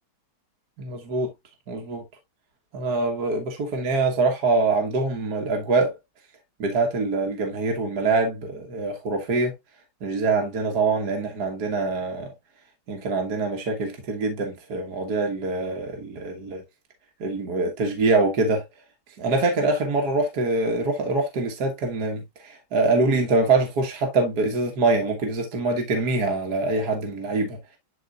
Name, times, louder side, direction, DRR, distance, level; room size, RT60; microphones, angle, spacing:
voice 1, 0.8-1.3 1.7-2.0 2.7-5.9 6.6-9.5 10.0-12.3 12.9-16.6 17.2-18.6 19.2-27.6, right 3 dB, 50° right, 1.8 m, -24 dB
11.5 x 4.0 x 2.4 m
omnidirectional pair, 2.3 m